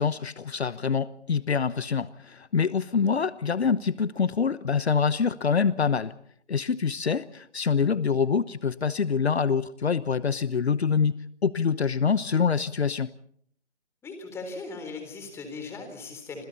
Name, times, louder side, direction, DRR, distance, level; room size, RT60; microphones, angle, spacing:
voice 1, 0.0-6.1 6.5-11.2 11.4-13.1, left 6 dB, 65° left, 17 dB, 1.0 m, -25 dB
voice 2, 14.0-16.5, left 3 dB, 5° left, 5 dB, 3.8 m, -38 dB
30.0 x 26.5 x 4.2 m, 0.65 s
figure-of-eight pair, 150°, 35 cm